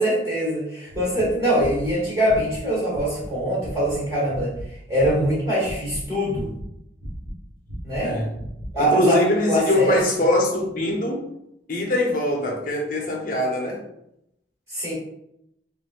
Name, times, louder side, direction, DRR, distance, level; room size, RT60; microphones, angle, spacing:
voice 1, 0.0-4.5 4.9-6.5 7.8-8.1 8.7-9.2 9.4-10.0 14.7-14.9, right 1 dB, 15° right, -8 dB, 1.1 m, -23 dB
sound 1, 0.9-3.3 3.6-4.0 4.3-5.4 5.6-6.7 7.0-8.8, equal, 65° right, 1.3 m, -36 dB
voice 2, 8.0-8.4 8.7-11.3 11.7-13.8, left 1 dB, 50° left, 0 dB, 0.7 m, -23 dB
3.2 x 2.6 x 2.4 m, 0.80 s
head